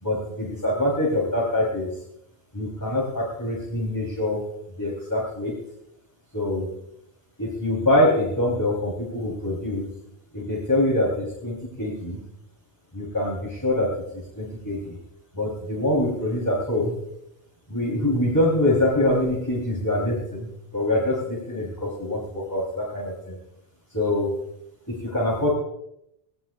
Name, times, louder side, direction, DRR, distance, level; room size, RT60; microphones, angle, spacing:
voice 1, 0.0-1.9 2.5-4.4 4.8-5.6 6.3-6.7 7.4-9.9 10.3-12.2 12.9-15.0 15.3-16.9 17.7-23.4 23.9-24.4 24.9-25.5, left 1 dB, 15° left, -5 dB, 3.3 m, -24 dB
18.5 x 17.5 x 2.4 m, 0.81 s
omnidirectional pair, 1.1 m